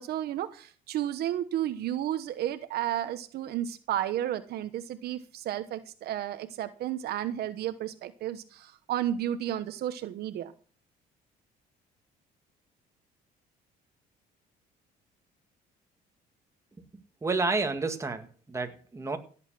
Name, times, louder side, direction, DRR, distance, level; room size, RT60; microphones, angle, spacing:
voice 1, 0.0-10.5, right 11 dB, 70° right, 10 dB, 1.1 m, -32 dB
voice 2, 17.2-19.2, right 3 dB, 15° right, 5 dB, 2.0 m, -30 dB
17.0 x 8.1 x 6.3 m, 0.42 s
cardioid pair, 110°, 17 cm